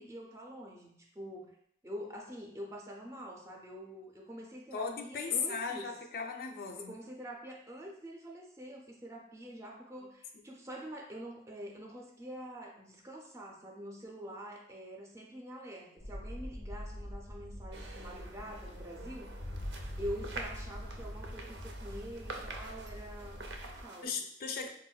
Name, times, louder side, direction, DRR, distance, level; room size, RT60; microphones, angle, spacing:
voice 1, 0.0-1.6 1.8-6.0 6.8-19.3 20.0-24.3, equal, 15° right, 0 dB, 0.4 m, -46 dB
voice 2, 4.7-6.9 24.0-24.7, left 5 dB, 55° left, 3 dB, 0.3 m, -36 dB
sound 1, 16.0-23.8, equal, 90° left, 0.6 m, -44 dB
sound 2, 17.7-24.1, right 3 dB, 85° right, 0.4 m, -47 dB
4.2 x 2.1 x 2.2 m, 0.71 s
head